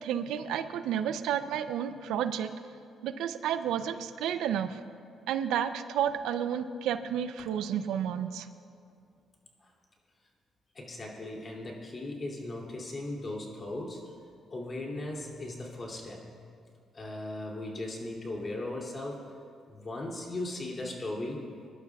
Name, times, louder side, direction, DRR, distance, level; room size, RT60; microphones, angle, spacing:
voice 1, 0.0-2.5 3.0-4.8 5.3-8.5, right 9 dB, 90° right, 10 dB, 0.5 m, -31 dB
voice 2, 10.7-14.1 14.5-16.4 16.9-19.3 19.7-21.4, left 2 dB, 35° left, -1 dB, 2.7 m, -38 dB
23.0 x 11.5 x 2.4 m, 2.3 s
cardioid pair, 90°, 0 cm